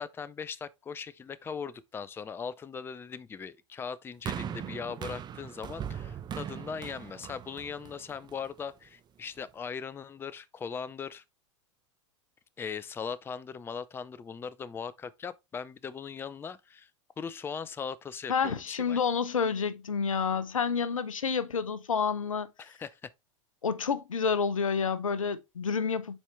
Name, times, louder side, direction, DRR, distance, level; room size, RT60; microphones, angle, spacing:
voice 1, 0.0-11.2 12.6-16.9 17.2-19.0 22.6-23.1, left 6 dB, 15° left, 0.4 m, -39 dB
sound 1, 4.3-8.6 9.4-9.5, right 9 dB, 25° right, 0.7 m, -39 dB
voice 2, 18.3-22.5 23.6-26.2, left 6 dB, 85° left, 0.7 m, -29 dB
7.0 x 4.5 x 3.4 m
hypercardioid pair, 90°, 17 cm